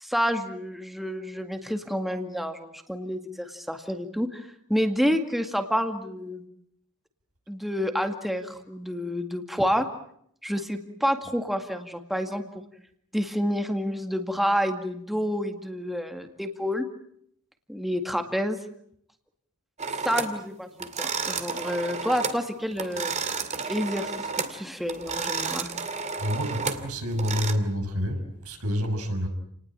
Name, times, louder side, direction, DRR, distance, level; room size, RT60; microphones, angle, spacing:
voice 1, 0.0-4.4 4.7-6.4 7.5-9.9 10.4-12.6 13.1-16.9 17.7-18.6 20.0-23.1 23.7-25.7, equal, ahead, 6 dB, 2.1 m, -29 dB
sound 1, 19.8-20.4 20.8-22.4 22.7-24.6 24.9-27.5, right 5 dB, 30° right, 2.3 m, -31 dB
voice 2, 26.2-29.3, equal, 80° right, 4 dB, 6.3 m, -28 dB
30.0 x 20.0 x 9.0 m, 0.70 s
head